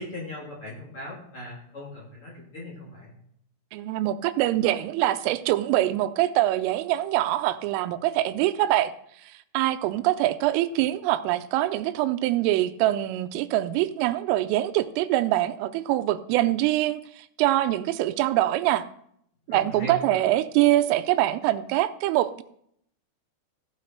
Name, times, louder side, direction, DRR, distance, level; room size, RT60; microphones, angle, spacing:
voice 1, 0.0-3.1 19.5-20.2, equal, 30° left, -5 dB, 3.1 m, -39 dB
voice 2, 3.7-8.9 9.5-17.0 17.4-18.9 19.5-22.4, right 14 dB, 90° right, 12 dB, 3.3 m, -24 dB
15.0 x 7.3 x 4.5 m, 0.69 s
omnidirectional pair, 5.7 m